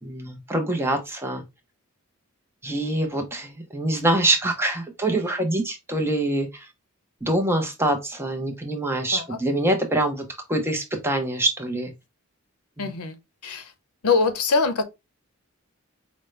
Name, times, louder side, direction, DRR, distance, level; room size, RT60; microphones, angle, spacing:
voice 1, 0.0-1.4 2.6-6.7 7.2-11.9 12.8-12.9, right 1 dB, 10° right, 0.6 m, -25 dB
voice 2, 12.8-13.1 13.4-13.7 14.0-14.9, left 4 dB, 85° left, 0.8 m, -23 dB
5.1 x 2.1 x 3.1 m
head